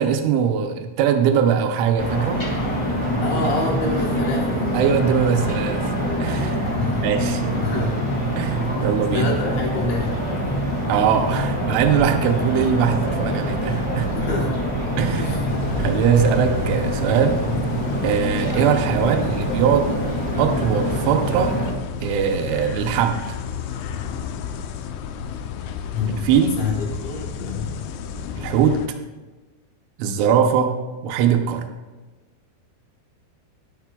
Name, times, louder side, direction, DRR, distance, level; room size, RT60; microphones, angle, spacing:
voice 1, 0.0-2.4 4.7-5.9 6.2-6.6 7.0-7.5 8.4-9.3 10.9-14.1 15.0-17.4 18.0-19.9 20.4-21.5 22.0-23.3 26.1-26.6 28.4-28.8 30.0-30.7 31.0-31.7, right 7 dB, 90° right, 5 dB, 3.1 m, -21 dB
sound 1, 2.0-21.7, equal, 20° left, 1.5 m, -25 dB
voice 2, 3.2-4.5 6.8-7.1 7.6-8.0 8.7-8.9 9.1-10.2 14.1-14.5 15.2-15.5 25.9-26.3 26.6-27.7, left 3 dB, 70° left, -1 dB, 2.8 m, -27 dB
sound 2, 15.5-28.9, left 6 dB, 85° left, 3.0 m, -32 dB
12.0 x 11.5 x 2.3 m, 1.2 s
omnidirectional pair, 5.3 m